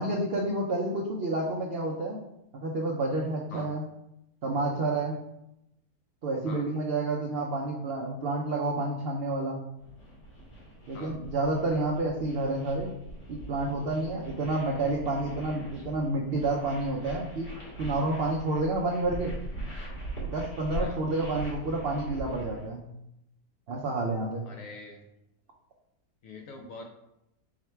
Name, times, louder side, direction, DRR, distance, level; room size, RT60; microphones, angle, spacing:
voice 1, 0.0-2.2 2.5-3.9 4.4-5.2 6.2-9.6 10.9-12.9 13.3-17.5 17.8-19.3 20.3-22.9 23.7-24.5, right 2 dB, 80° right, -1 dB, 0.5 m, -29 dB
sound 1, 9.8-22.7, right 1 dB, 85° left, 2.1 m, -41 dB
voice 2, 24.5-25.0 26.2-26.9, left 3 dB, 70° left, 3 dB, 0.8 m, -44 dB
4.8 x 2.2 x 4.4 m, 0.83 s
omnidirectional pair, 1.7 m